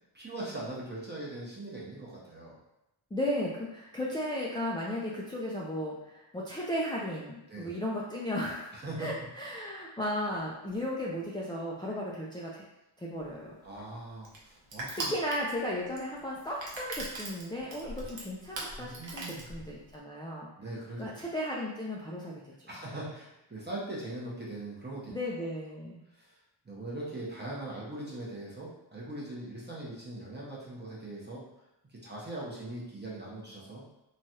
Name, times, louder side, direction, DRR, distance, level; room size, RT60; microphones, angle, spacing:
voice 1, 0.1-2.6 7.5-7.7 8.7-9.1 13.6-15.1 18.0-18.1 18.8-19.4 20.6-21.1 22.7-25.2 26.1-26.4 26.6-31.4 31.9-33.8, right 2 dB, 20° right, -6 dB, 0.7 m, -41 dB
voice 2, 3.1-8.6 9.0-12.6 13.0-13.5 14.9-20.5 21.0-22.4 25.1-26.0, left 1 dB, 10° left, -5 dB, 0.3 m, -35 dB
Crushing, 13.2-20.0, right 2 dB, 65° right, 0.8 m, -41 dB
3.1 x 2.3 x 2.7 m, 0.90 s
wide cardioid pair, 95°, 48 cm